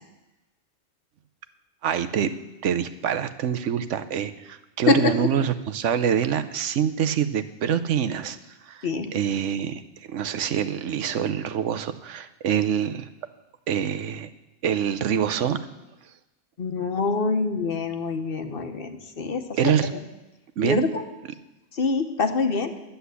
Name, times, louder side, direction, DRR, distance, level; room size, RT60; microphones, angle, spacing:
voice 1, 1.8-2.3 2.6-8.4 8.6-8.9 9.1-9.8 10.1-13.1 13.7-14.3 14.6-15.6 19.5-19.9 20.6-20.8, right 8 dB, 85° right, 12 dB, 1.1 m, -25 dB
voice 2, 4.9-5.3 8.8-9.1 16.6-20.0 20.6-21.0 21.7-22.7, left 4 dB, 55° left, 7 dB, 1.2 m, -25 dB
11.5 x 8.0 x 8.2 m, 1.0 s
omnidirectional pair, 1.2 m